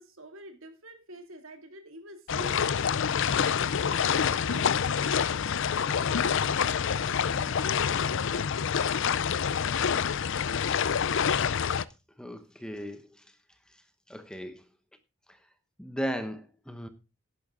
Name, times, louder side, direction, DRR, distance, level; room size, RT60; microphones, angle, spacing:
voice 1, 0.0-2.8 3.3-5.3 5.7-9.0, right 1 dB, 70° right, 2.7 m, -49 dB
sound 1, 2.3-11.8, left 7 dB, 60° left, 0.5 m, -27 dB
voice 2, 12.2-13.1 14.1-14.6 15.3-15.4 15.8-16.9, equal, 5° left, 1.0 m, -36 dB
11.0 x 11.0 x 3.8 m
head